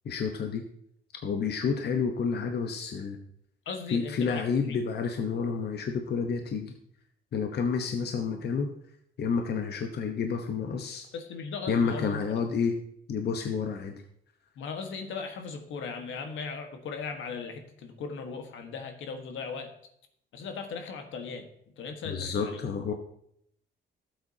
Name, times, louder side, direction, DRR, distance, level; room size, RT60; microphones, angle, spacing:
voice 1, 0.0-0.7 1.2-3.2 3.9-6.7 7.3-8.7 9.2-11.1 11.7-12.8 13.1-14.0 22.0-22.9, left 5 dB, 55° left, 4 dB, 1.0 m, -29 dB
voice 2, 3.6-4.4 4.7-4.8 11.1-12.2 14.6-19.7 20.3-21.5 21.8-22.6, left 5 dB, 80° left, 5 dB, 1.5 m, -38 dB
12.5 x 8.0 x 2.8 m, 0.69 s
cardioid pair, 90°, 20 cm